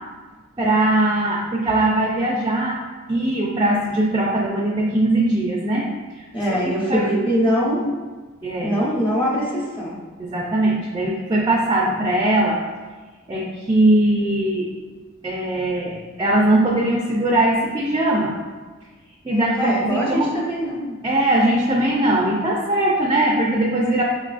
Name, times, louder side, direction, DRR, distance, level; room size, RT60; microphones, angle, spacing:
voice 1, 0.6-2.8 3.1-5.9 6.1-6.2 6.9-7.1 8.4-8.8 10.2-12.6 13.3-14.7 15.2-18.3 19.2-20.3 21.0-24.0, right 1 dB, 20° right, -2 dB, 0.3 m, -20 dB
voice 2, 6.3-7.9 8.6-9.9 19.3-21.0, equal, 25° left, -5 dB, 0.8 m, -22 dB
5.2 x 2.3 x 2.4 m, 1.3 s
head